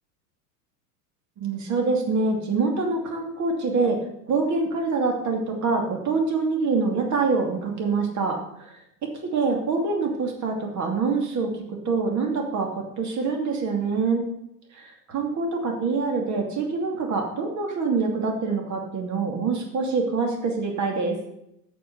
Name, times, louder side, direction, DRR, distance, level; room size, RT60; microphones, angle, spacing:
voice 1, 1.4-4.0 4.3-8.8 9.2-11.5 11.8-14.2 14.8-21.2, right 4 dB, 35° right, 2 dB, 2.6 m, -25 dB
8.5 x 7.1 x 6.6 m, 0.81 s
hypercardioid pair, 90°, 48 cm